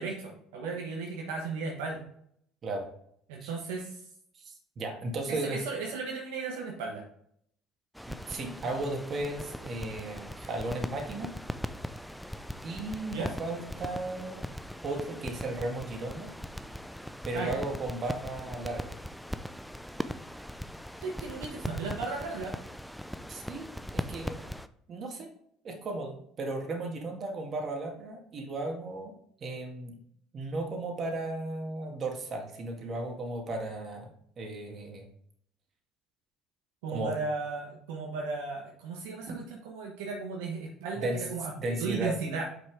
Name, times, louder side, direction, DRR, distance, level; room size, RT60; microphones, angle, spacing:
voice 1, 0.0-2.0 3.3-4.0 5.3-7.0 13.1-13.3 17.3-17.5 21.0-22.6 36.8-42.4, right 4 dB, 75° right, 0 dB, 1.3 m, -35 dB
voice 2, 4.4-5.6 8.1-11.3 12.6-14.4 14.8-16.3 17.2-18.9 23.3-23.7 23.9-24.4 24.9-25.3 25.6-29.1 29.4-30.0 30.3-35.1 36.9-37.1 39.3-39.4 41.0-41.3 41.6-42.1, right 2 dB, 45° right, 2 dB, 2.1 m, -35 dB
sound 1, 7.9-24.7, equal, ahead, 0.5 m, -40 dB
7.5 x 5.9 x 3.5 m, 0.67 s
hypercardioid pair, 60°, 0 cm